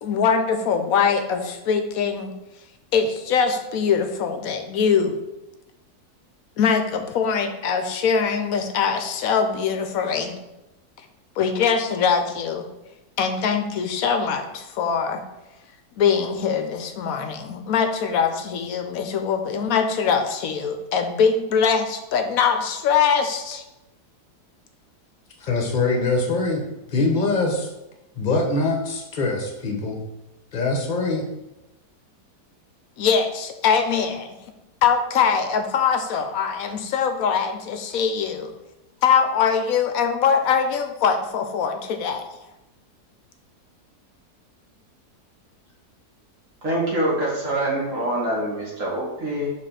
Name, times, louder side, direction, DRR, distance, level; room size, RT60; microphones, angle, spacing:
voice 1, 0.0-2.3 2.9-5.2 6.6-10.4 11.4-12.6 13.2-15.2 16.0-23.6 33.0-34.3 34.8-38.5 39.0-42.2, left 6 dB, 65° left, 6 dB, 1.0 m, -22 dB
voice 2, 25.4-26.6 26.9-27.7 28.2-30.0 30.5-31.2, left 3 dB, 35° left, 2 dB, 1.0 m, -23 dB
voice 3, 46.6-49.5, right 1 dB, 55° right, -5 dB, 2.3 m, -25 dB
5.1 x 3.9 x 5.7 m, 0.97 s
omnidirectional pair, 1.7 m